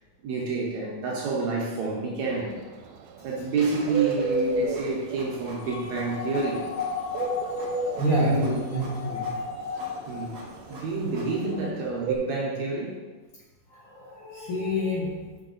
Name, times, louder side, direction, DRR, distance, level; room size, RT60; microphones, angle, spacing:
voice 1, 0.2-2.5 3.2-6.7 8.2-8.6 10.1-10.4 10.7-13.0, right 4 dB, 70° right, -3 dB, 2.0 m, -29 dB
Bird, 2.2-12.2, right 2 dB, 90° right, 2.2 m, -30 dB
Printer, 3.5-11.5, right 1 dB, 45° right, 1.1 m, -46 dB
sound 1, 5.6-10.7 11.2-11.7, left 5 dB, 80° left, 1.6 m, -35 dB
voice 2, 8.0-9.9 13.7-15.4, equal, 50° left, -7 dB, 2.1 m, -28 dB
5.8 x 5.8 x 3.9 m, 1.3 s
omnidirectional pair, 3.7 m